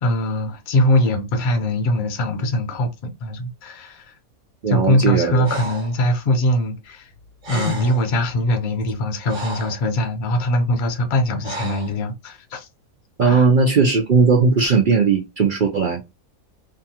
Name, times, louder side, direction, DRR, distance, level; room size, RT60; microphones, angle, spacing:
voice 1, 0.0-4.1 4.7-7.1 7.5-12.7 13.2-13.5, left 1 dB, 45° left, 0.7 m, -22 dB
voice 2, 4.6-5.6 13.2-16.0, right 5 dB, 70° right, 0.4 m, -17 dB
Breathing, 5.4-6.0 7.1-7.2 7.4-8.1 8.8-9.8 11.4-11.9, right 1 dB, 40° right, 1.2 m, -30 dB
2.7 x 2.3 x 2.8 m
omnidirectional pair, 1.6 m